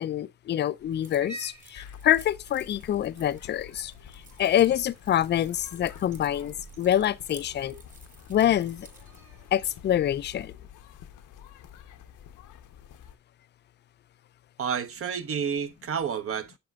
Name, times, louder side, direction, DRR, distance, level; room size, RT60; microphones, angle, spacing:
voice 1, 0.0-7.7 8.3-8.9 9.5-10.5, left 11 dB, 35° left, 0.4 m, -26 dB
Cat, 0.8-9.8, right 2 dB, 75° right, 3.3 m, -51 dB
Keys jangling, 1.0-9.2, right 3 dB, 25° right, 1.5 m, -54 dB
sound 1, 1.7-13.2, left 9 dB, 80° left, 0.9 m, -49 dB
voice 2, 14.6-16.6, right 7 dB, 45° right, 0.8 m, -30 dB
8.7 x 6.6 x 2.3 m
cardioid pair, 90°, 30 cm